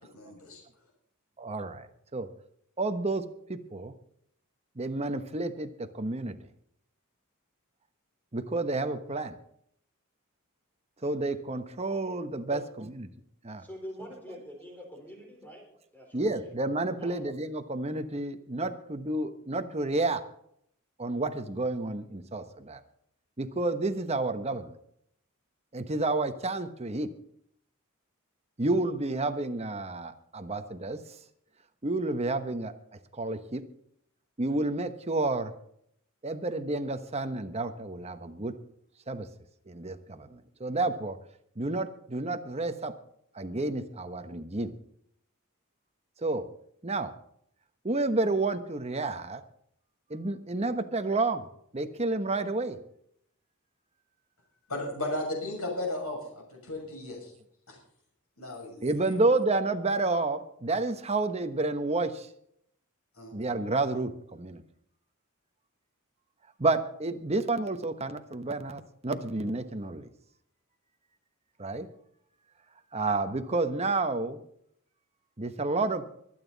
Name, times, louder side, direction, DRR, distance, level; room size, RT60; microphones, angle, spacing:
voice 1, 0.1-0.6 54.7-57.3 57.7-57.8 58.4-59.1 63.2-63.3, left 1 dB, 90° left, -1 dB, 6.5 m, -35 dB
voice 2, 1.4-2.3 2.8-3.2 3.5-3.9 4.8-6.4 8.3-9.3 11.0-13.1 13.4-13.6 14.0-14.1 16.1-20.2 21.0-22.8 23.4-24.7 25.7-27.1 28.6-31.0 31.8-32.7 33.1-33.6 34.4-35.5 36.2-38.5 39.1-39.3 39.7-41.2 41.6-42.9 43.3-44.7 46.2-46.4 46.8-47.1 47.8-49.4 50.1-51.4 51.7-52.8 58.8-62.3 63.3-64.6 66.6-70.1 71.6-71.9 72.9-74.4 75.4-76.0, right 2 dB, 30° right, 8 dB, 1.1 m, -30 dB
voice 3, 13.6-15.6 15.9-16.5 17.0-17.2, left 1 dB, 10° left, 0 dB, 4.1 m, -44 dB
24.0 x 9.3 x 4.1 m, 0.69 s
head